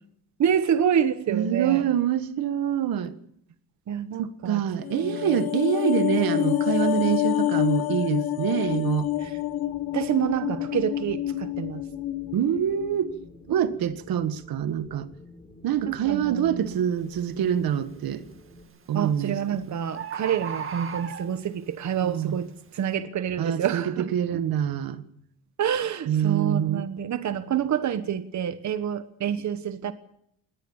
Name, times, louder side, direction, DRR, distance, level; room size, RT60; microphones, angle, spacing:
voice 1, 0.4-1.9 3.9-4.6 5.0-5.2 9.2-9.4 9.9-11.8 15.8-16.9 18.9-24.1 25.6-29.9, right 9 dB, 50° right, 1.3 m, -27 dB
voice 2, 1.3-3.1 4.2-9.1 12.3-13.1 13.5-15.1 15.6-18.2 18.9-19.4 22.0-22.4 23.4-23.8 24.1-25.0 26.1-26.8, right 9 dB, 80° right, 1.7 m, -25 dB
sound 1, 4.8-13.2 13.5-13.7, left 13 dB, 90° left, 1.5 m, -28 dB
Wind, 8.6-18.6, left 2 dB, 15° left, 3.9 m, -49 dB
Bird, 16.7-16.9 17.5-17.9 18.9-19.0 19.3-19.4 19.6-19.7 19.9-21.7 22.2-22.3, right 7 dB, 35° right, 2.0 m, -35 dB
21.5 x 18.5 x 7.3 m
cardioid pair, 145°, 35 cm